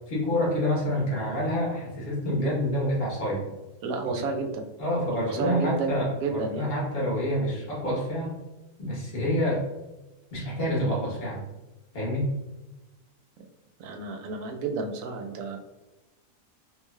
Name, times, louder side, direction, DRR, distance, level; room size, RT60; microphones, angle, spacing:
voice 1, 0.1-3.4 4.8-8.4 8.8-9.6 10.3-11.4 11.9-12.3, equal, 50° left, -5 dB, 1.3 m, -27 dB
voice 2, 3.8-4.7 5.1-6.7 13.8-15.6, right 4 dB, 90° right, 3 dB, 1.0 m, -31 dB
3.8 x 3.0 x 2.3 m, 1.0 s
omnidirectional pair, 1.4 m